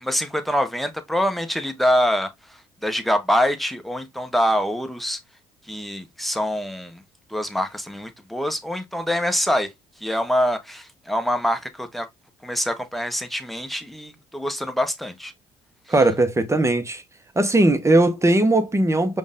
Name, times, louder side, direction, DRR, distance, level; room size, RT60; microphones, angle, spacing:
voice 1, 0.0-5.2 5.7-7.0 7.3-9.7 10.0-12.1 12.4-15.3, equal, ahead, 1.1 m, -25 dB
voice 2, 15.9-17.0 17.3-19.2, right 2 dB, 15° right, 1.0 m, -19 dB
5.2 x 2.5 x 3.6 m
hypercardioid pair, 60°, 16 cm